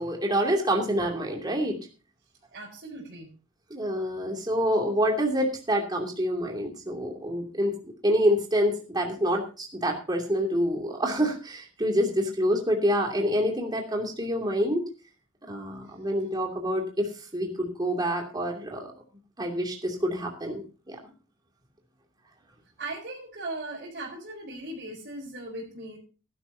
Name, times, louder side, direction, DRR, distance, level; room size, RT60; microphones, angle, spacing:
voice 1, 0.0-1.8 3.7-14.8 15.4-18.9 19.4-21.0, equal, 20° right, 1 dB, 2.8 m, -27 dB
voice 2, 2.5-3.3 22.8-26.0, right 2 dB, 50° right, -3 dB, 4.6 m, -38 dB
19.0 x 11.5 x 2.8 m, 0.34 s
head